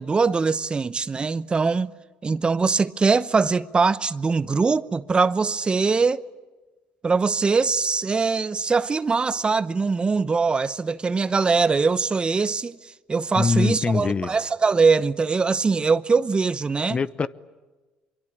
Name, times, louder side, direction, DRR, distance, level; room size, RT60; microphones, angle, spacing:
voice 1, 0.0-1.9 2.2-6.2 7.0-17.0, right 4 dB, 30° right, 0.9 m, -22 dB
voice 2, 13.4-14.4 16.9-17.3, left 4 dB, 35° left, 0.9 m, -23 dB
25.0 x 23.5 x 9.9 m
supercardioid pair, 70°, 3 cm